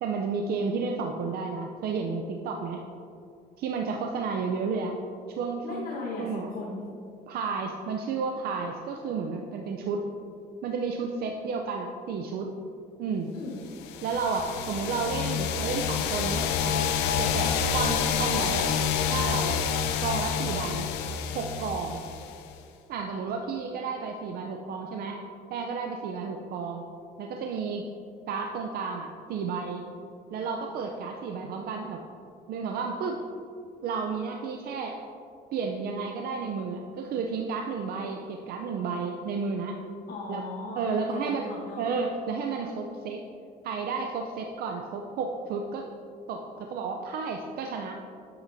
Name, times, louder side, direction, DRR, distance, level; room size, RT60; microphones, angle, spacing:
voice 1, 0.0-2.8 3.6-5.0 5.3-5.9 6.2-6.5 7.3-10.1 10.6-12.5 13.0-13.3 14.0-16.9 17.2-18.7 19.1-19.6 20.0-20.9 21.3-22.0 22.9-25.2 25.5-26.8 27.2-27.9 28.3-29.8 30.3-32.0 32.5-33.2 33.8-35.0 35.5-39.8 40.3-40.4 40.8-41.5 41.8-43.2 43.6-45.9 46.3-48.0, right 5 dB, 65° right, 3 dB, 0.6 m, -32 dB
voice 2, 5.6-6.9 13.3-13.7 20.4-20.5 40.1-41.9, left 2 dB, 60° left, -3 dB, 1.1 m, -37 dB
sound 1, 13.8-22.5, left 7 dB, 90° left, 0.6 m, -28 dB
9.7 x 7.8 x 2.7 m, 2.5 s
cardioid pair, 110°, 17 cm